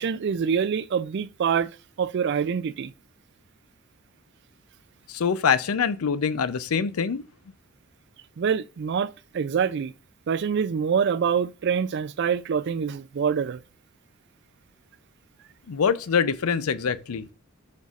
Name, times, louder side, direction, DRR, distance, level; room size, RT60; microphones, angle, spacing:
voice 1, 0.0-1.7 2.0-2.9 8.4-9.9 10.3-13.6, right 7 dB, 50° right, 0.3 m, -25 dB
voice 2, 5.1-7.3 15.7-17.3, left 6 dB, 80° left, 0.5 m, -24 dB
10.5 x 5.3 x 2.4 m
head